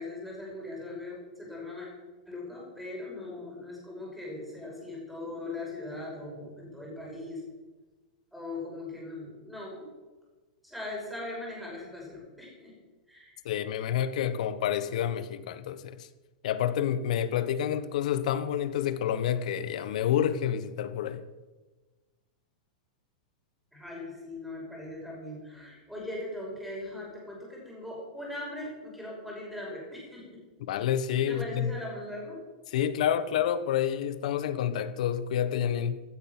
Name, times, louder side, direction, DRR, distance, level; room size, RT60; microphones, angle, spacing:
voice 1, 0.0-1.9 2.3-7.4 8.3-9.9 10.6-12.7 13.1-13.4 23.7-30.4 31.3-32.4, left 2 dB, ahead, 5.7 m, -40 dB
voice 2, 13.4-16.1 16.4-21.3 30.7-31.8 32.7-36.0, left 9 dB, 60° left, 1.2 m, -29 dB
15.0 x 12.5 x 6.1 m
supercardioid pair, 165°, 4 cm